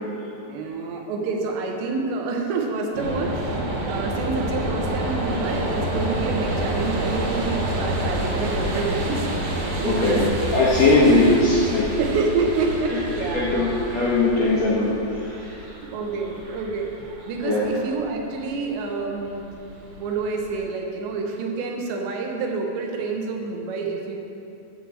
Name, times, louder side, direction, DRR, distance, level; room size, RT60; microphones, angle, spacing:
voice 1, 0.5-9.3 9.7-10.2 10.8-11.2 12.0-13.5 15.9-16.9 17.3-19.4 20.0-24.2, right 4 dB, 90° right, 1 dB, 3.3 m, -28 dB
sound 1, 2.9-20.6, right 1 dB, 65° right, 2.8 m, -28 dB
voice 2, 9.8-10.2 10.5-12.0 12.9-13.0 13.3-15.7 17.4-17.6, left 2 dB, 55° left, -7 dB, 2.0 m, -20 dB
11.5 x 4.9 x 7.5 m, 2.7 s
omnidirectional pair, 4.9 m